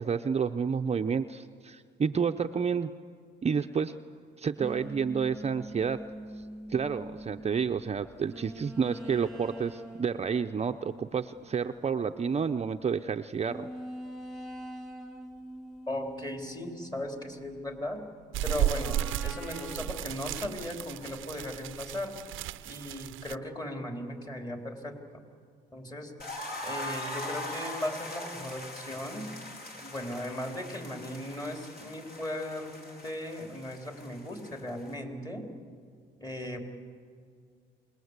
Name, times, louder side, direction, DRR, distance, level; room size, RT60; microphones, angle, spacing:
voice 1, 0.0-2.9 3.4-3.9 4.4-6.0 6.7-13.7, right 6 dB, 35° right, 6 dB, 0.7 m, -30 dB
sound 1, 4.6-12.3 12.8-12.9 13.5-17.9 18.4-22.0, right 1 dB, ahead, 2.5 m, -45 dB
voice 2, 15.9-18.0 18.4-22.2 22.6-25.0 25.7-26.1 26.6-29.3 29.8-35.5 36.2-36.6, left 1 dB, 20° left, 3 dB, 3.8 m, -37 dB
sound 2, 18.3-23.4, right 13 dB, 85° right, 0.6 m, -34 dB
sound 3, 26.2-34.9, left 1 dB, 50° left, 4.2 m, -41 dB
27.0 x 20.5 x 8.1 m, 2.1 s
cardioid pair, 90°, 20 cm